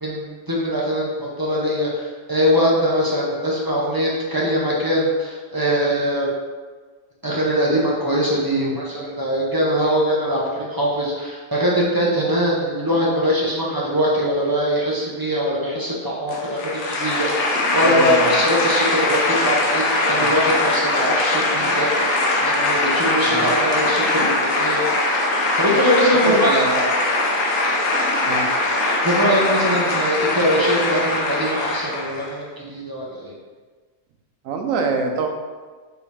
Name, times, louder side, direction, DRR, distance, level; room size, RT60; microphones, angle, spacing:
voice 1, 0.0-6.3 7.2-22.1 22.4-24.8 25.6-26.6 29.0-33.3, equal, 20° right, -5 dB, 0.6 m, -22 dB
sound 1, 16.3-32.3, left 2 dB, 80° left, 1.1 m, -21 dB
voice 2, 17.8-18.4 22.8-22.9 23.3-23.6 26.2-26.9 28.2-28.5 34.4-35.3, right 4 dB, 80° right, 3 dB, 1.0 m, -25 dB
4.0 x 3.0 x 4.0 m, 1.4 s
omnidirectional pair, 1.4 m